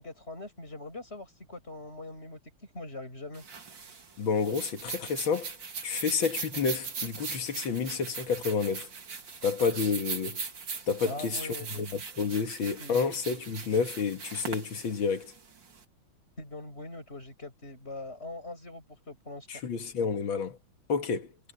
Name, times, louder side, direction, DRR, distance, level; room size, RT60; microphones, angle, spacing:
voice 1, 0.0-2.4 2.7-3.4 11.0-11.8 12.6-13.0 16.4-19.5, left 2 dB, 30° left, 7.4 m, -42 dB
sound 1, 3.3-15.8, right 5 dB, 70° right, 3.1 m, -40 dB
voice 2, 4.2-5.5 5.8-8.9 9.4-10.4 10.9-15.3 19.5-20.6 20.9-21.3, left 5 dB, 90° left, 2.5 m, -30 dB
omnidirectional pair, 2.1 m